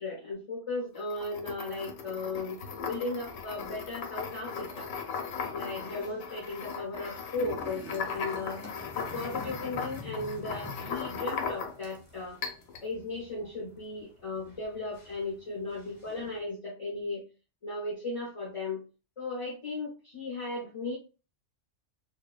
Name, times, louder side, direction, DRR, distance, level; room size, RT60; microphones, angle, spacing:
voice 1, 0.0-4.9 5.5-8.7 8.9-12.4 12.8-17.2 17.6-18.8 19.2-21.0, left 3 dB, 35° left, -4 dB, 0.6 m, -36 dB
sound 1, 0.9-11.9 12.4-12.9, left 6 dB, 90° left, 0.9 m, -38 dB
sound 2, 3.2-16.4, left 2 dB, 15° left, 1.0 m, -49 dB
2.8 x 2.1 x 2.4 m, 0.33 s
omnidirectional pair, 1.2 m